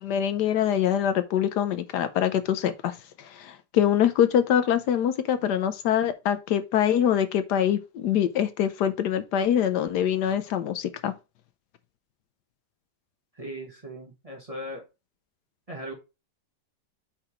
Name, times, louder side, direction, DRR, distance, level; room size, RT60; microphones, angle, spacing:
voice 1, 0.0-2.9 3.4-11.1, left 9 dB, 70° left, 1.2 m, -24 dB
voice 2, 13.3-14.9 15.7-15.9, equal, 20° right, 1.3 m, -38 dB
4.9 x 4.6 x 4.8 m
omnidirectional pair, 1.9 m